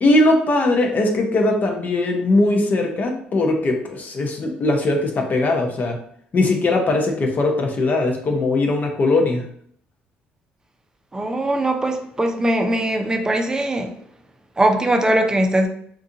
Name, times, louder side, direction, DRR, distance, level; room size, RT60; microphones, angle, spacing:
voice 1, 0.0-6.0 6.3-9.4, left 2 dB, 45° left, 2 dB, 0.7 m, -20 dB
voice 2, 11.1-13.9 14.6-15.7, right 1 dB, 15° right, 5 dB, 0.6 m, -20 dB
3.8 x 2.4 x 2.7 m, 0.63 s
cardioid pair, 80°, 4 cm